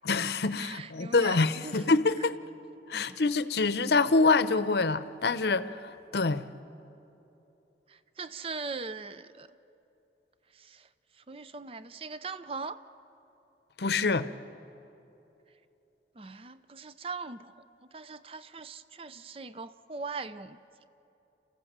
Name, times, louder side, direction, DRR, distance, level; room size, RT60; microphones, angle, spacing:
voice 1, 0.0-2.3 2.9-5.7 6.1-6.5 13.8-14.3, left 3 dB, 70° left, 0.7 m, -25 dB
voice 2, 0.6-1.7 2.9-3.2 7.9-9.5 10.6-10.9 11.3-12.8 16.2-17.5 17.9-20.6, right 4 dB, 30° right, 0.5 m, -40 dB
28.5 x 15.0 x 7.4 m
head